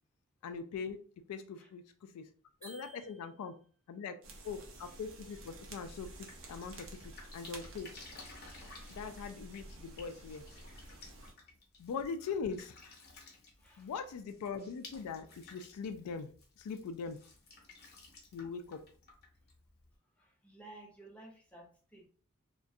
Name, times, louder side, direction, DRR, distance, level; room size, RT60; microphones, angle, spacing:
voice 1, 0.4-1.0 1.3-2.3 2.6-3.5 3.9-4.2 4.4-7.9 8.9-10.4 11.8-12.7 13.8-16.3 16.6-17.2 18.3-18.8, left 5 dB, 75° left, 0.3 m, -41 dB
sound 1, 2.6-3.8, right 2 dB, 40° right, 1.0 m, -55 dB
sound 2, 4.2-11.3, right 2 dB, 60° right, 0.6 m, -51 dB
Drip, 5.9-19.9, left 3 dB, 45° left, 0.7 m, -56 dB
voice 2, 13.4-13.9 20.1-22.1, right 2 dB, 5° left, 0.6 m, -55 dB
2.4 x 2.1 x 2.6 m
head